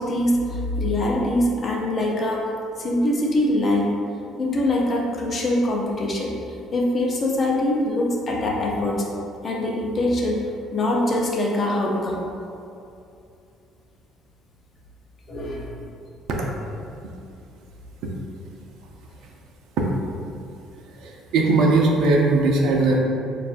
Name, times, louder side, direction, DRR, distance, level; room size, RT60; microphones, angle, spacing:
voice 1, 0.0-2.5 2.8-3.9 4.4-6.3 6.7-9.1 9.4-10.4 10.7-12.2 15.3-15.7, left 1 dB, 35° left, -2 dB, 0.7 m, -23 dB
voice 2, 21.0-23.0, right 3 dB, 70° right, 0 dB, 0.5 m, -19 dB
6.5 x 2.4 x 2.5 m, 2.6 s
cardioid pair, 120°, 0 cm